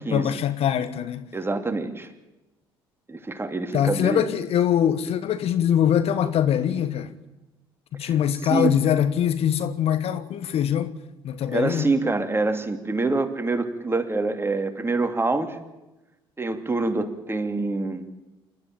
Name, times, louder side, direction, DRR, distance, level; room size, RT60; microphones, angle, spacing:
voice 1, 0.0-1.3 3.7-7.1 7.9-10.9 11.2-11.9, left 9 dB, 50° left, 1.4 m, -23 dB
voice 2, 1.3-2.1 3.1-4.2 8.0-8.1 8.4-8.8 11.5-15.6 16.4-18.1, right 3 dB, 20° right, 2.7 m, -26 dB
28.0 x 13.0 x 9.0 m
figure-of-eight pair, 55°, 13 cm